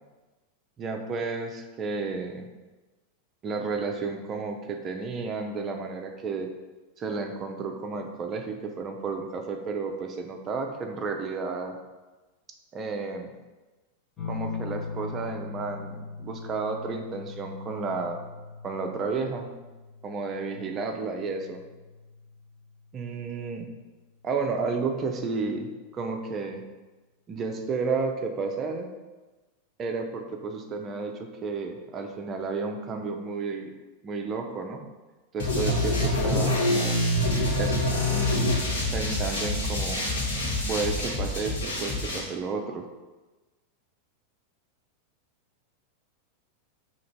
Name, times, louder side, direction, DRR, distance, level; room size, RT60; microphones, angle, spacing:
voice 1, 0.8-2.5 3.4-6.5 7.0-11.8 12.7-13.3 14.3-18.2 18.6-19.5 20.0-21.6 22.9-23.7 24.2-26.6 27.3-28.9 29.8-33.7 34.0-34.9 35.3-37.0 37.6-37.7 38.1-38.6 38.9-40.0 40.7-42.8, right 4 dB, 30° right, 3 dB, 0.5 m, -32 dB
sound 1, 14.2-23.3 24.7-25.3, left 5 dB, 30° left, 0.9 m, -41 dB
sound 2, 35.4-42.2, left 1 dB, 55° left, 1.3 m, -26 dB
2.9 x 2.6 x 4.4 m, 1.2 s
figure-of-eight pair, 90°, 0 cm